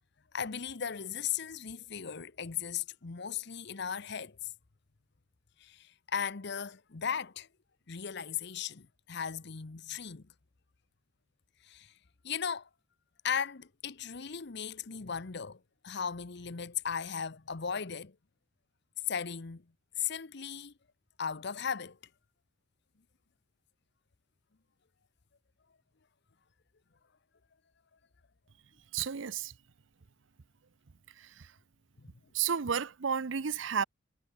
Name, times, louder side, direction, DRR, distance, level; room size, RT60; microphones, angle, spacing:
voice 1, 0.3-4.5 5.6-7.5 7.9-10.3 11.6-11.9 12.2-12.7 13.2-18.1 19.1-19.6 20.0-20.7 21.2-22.0 32.0-32.1, left 7 dB, 60° left, 0.9 m, -37 dB
voice 2, 28.9-29.5 31.1-31.5 32.3-33.8, right 7 dB, 70° right, 0.7 m, -32 dB
head